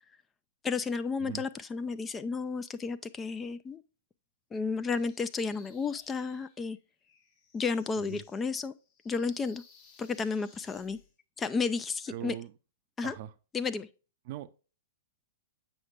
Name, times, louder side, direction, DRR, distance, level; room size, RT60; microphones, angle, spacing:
voice 1, 0.6-3.8 4.5-6.8 7.5-8.7 9.1-9.6 10.0-11.0 11.4-12.4 13.0-13.2 13.5-13.9, left 4 dB, 15° left, 0.4 m, -32 dB
sound 1, 4.8-11.1, left 5 dB, 40° left, 1.5 m, -60 dB
voice 2, 12.1-12.5 13.0-13.3 14.3-14.6, right 13 dB, 50° right, 0.5 m, -40 dB
7.8 x 5.8 x 2.4 m
figure-of-eight pair, 110°, 0 cm